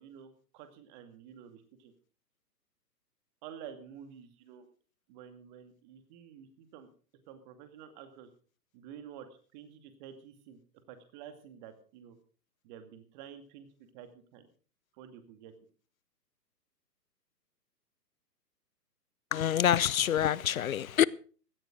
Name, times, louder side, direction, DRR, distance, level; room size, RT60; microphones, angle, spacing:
voice 1, 0.0-1.9 3.4-4.7 5.1-6.9 7.3-8.3 8.7-9.3 9.5-10.6 10.9-12.2 12.6-13.7 13.9-14.5 15.0-15.5, right 8 dB, 25° right, 2.3 m, -50 dB
voice 2, 19.3-21.1, left 10 dB, 55° left, 0.7 m, -26 dB
17.0 x 14.0 x 3.9 m
figure-of-eight pair, 130°, 50 cm